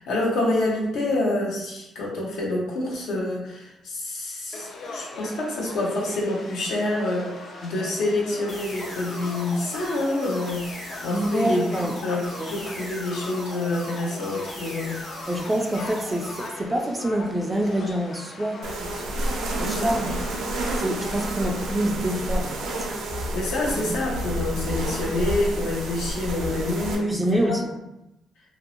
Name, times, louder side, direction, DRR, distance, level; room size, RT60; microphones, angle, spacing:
voice 1, 0.0-10.7 11.0-15.0 19.6-20.0 23.3-27.6, left 2 dB, 80° left, -4 dB, 0.7 m, -27 dB
Conversation / Crowd, 4.5-21.1, left 2 dB, 55° left, 0.4 m, -41 dB
sound 1, 8.5-16.5, left 1 dB, 40° left, 0.8 m, -38 dB
voice 2, 11.1-11.9 12.4-12.5 15.3-19.0 19.5-20.2 20.8-22.7 27.0-27.8, right 1 dB, 15° right, 2 dB, 0.4 m, -26 dB
sound 2, 18.6-27.0, right 1 dB, 85° right, 0.5 m, -29 dB
2.6 x 2.0 x 2.9 m, 0.89 s
cardioid pair, 90°, 0 cm